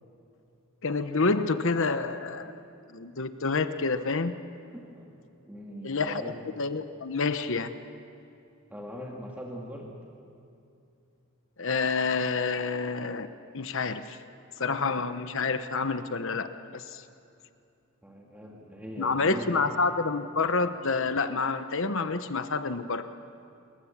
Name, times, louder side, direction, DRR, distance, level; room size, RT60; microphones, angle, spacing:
voice 1, 0.8-2.5 2.9-4.3 5.8-6.2 6.6-7.7 11.6-13.3 13.5-14.2 14.6-16.5 16.7-17.0 19.0-23.0, left 4 dB, 60° left, 10 dB, 1.0 m, -28 dB
voice 2, 4.7-5.1 5.5-6.4 8.7-9.9 18.0-19.6, equal, 10° right, -2 dB, 2.3 m, -41 dB
28.0 x 23.0 x 7.4 m, 2.6 s
head